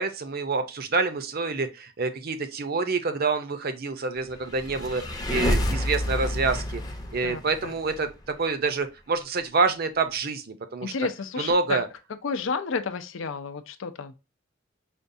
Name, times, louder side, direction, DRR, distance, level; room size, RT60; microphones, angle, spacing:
voice 1, 0.0-5.0 5.3-6.8 7.1-8.1 8.4-10.9 11.4-11.9, right 4 dB, 50° right, 0.6 m, -27 dB
sound 1, 4.4-8.0, left 1 dB, 20° left, 0.6 m, -28 dB
voice 2, 7.2-7.8 10.8-11.8 12.2-14.1, left 4 dB, 75° left, 0.5 m, -31 dB
5.1 x 2.3 x 2.6 m
head